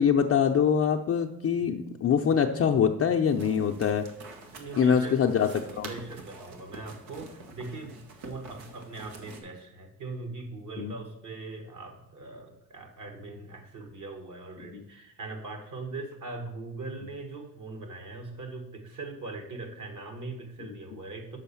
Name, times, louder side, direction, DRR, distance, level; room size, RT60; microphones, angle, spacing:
voice 1, 0.0-4.1 4.8-5.5 5.8-5.9 10.8-10.9 14.7-14.8, left 7 dB, 40° left, 3 dB, 0.5 m, -24 dB
sound 1, 3.3-9.4, right 3 dB, 85° right, 1.3 m, -47 dB
voice 2, 4.5-5.2 5.4-8.0 8.2-21.4, right 3 dB, 55° right, 5 dB, 1.7 m, -41 dB
6.3 x 5.2 x 6.9 m, 0.85 s
cardioid pair, 110°, 37 cm